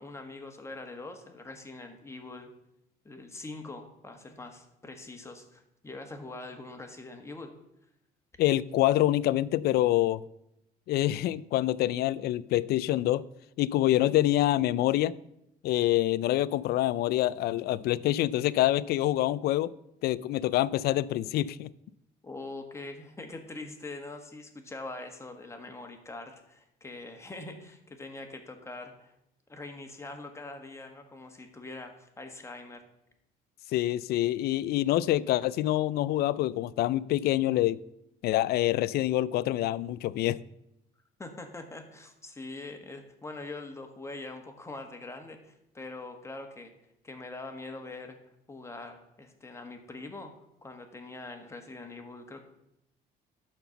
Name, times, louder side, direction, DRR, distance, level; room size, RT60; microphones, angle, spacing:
voice 1, 0.0-2.5 3.0-7.5 22.2-29.1 29.5-32.8 41.2-46.7 47.0-48.2 48.5-50.3 50.6-52.4, left 2 dB, 15° left, 5 dB, 1.5 m, -43 dB
voice 2, 8.4-10.2 10.9-13.2 13.6-15.1 15.6-19.7 20.0-21.7 33.7-37.8 38.2-40.4, left 14 dB, 70° left, 19 dB, 0.4 m, -26 dB
11.5 x 4.4 x 6.9 m, 0.81 s
cardioid pair, 110°, 17 cm